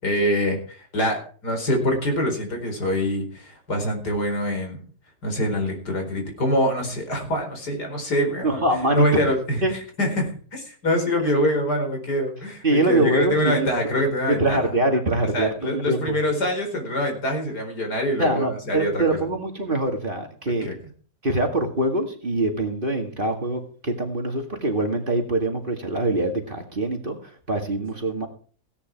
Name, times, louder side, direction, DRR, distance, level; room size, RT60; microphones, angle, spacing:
voice 1, 0.0-4.8 5.2-8.6 8.9-14.7 15.3-19.2 20.6-20.8, equal, 75° left, 3 dB, 5.1 m, -25 dB
voice 2, 8.4-9.2 9.6-9.7 12.6-13.7 14.3-16.2 18.2-20.7 21.2-27.2 27.5-28.3, right 1 dB, 30° right, 4 dB, 2.2 m, -24 dB
16.5 x 10.0 x 4.6 m, 0.43 s
omnidirectional pair, 1.7 m